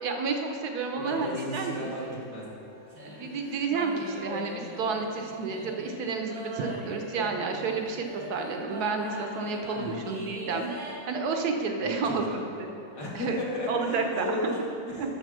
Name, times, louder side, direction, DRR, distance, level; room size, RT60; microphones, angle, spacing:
voice 1, 0.0-1.7 3.0-10.7 11.1-12.7 13.1-13.4 13.7-14.4 15.0-15.2, right 4 dB, 65° right, 4 dB, 1.2 m, -30 dB
voice 2, 1.0-2.5 9.8-10.1 11.8-12.4 12.9-15.2, left 1 dB, 70° left, -4 dB, 2.3 m, -34 dB
sound 1, 1.0-10.9, equal, 85° right, 2.4 m, -41 dB
7.9 x 6.5 x 6.1 m, 2.8 s
omnidirectional pair, 1.9 m